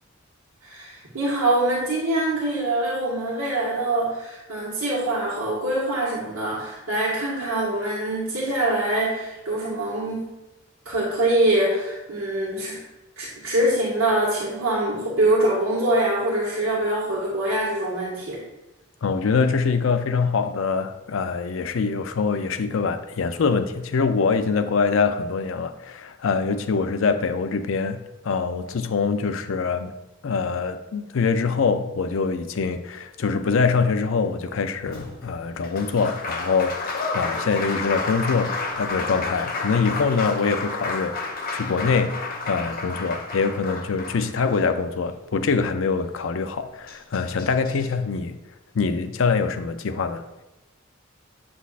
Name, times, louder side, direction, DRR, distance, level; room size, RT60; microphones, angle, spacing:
voice 1, 0.6-10.2 10.8-12.8 13.2-18.4, right 1 dB, 90° right, -7 dB, 1.6 m, -24 dB
voice 2, 19.0-29.9 30.2-48.4 48.7-50.3, left 5 dB, 70° left, 9 dB, 0.5 m, -24 dB
Applause, 34.8-45.1 46.5-46.6 46.9-47.9, left 3 dB, 45° left, 0.9 m, -31 dB
8.2 x 6.1 x 2.5 m, 0.97 s
head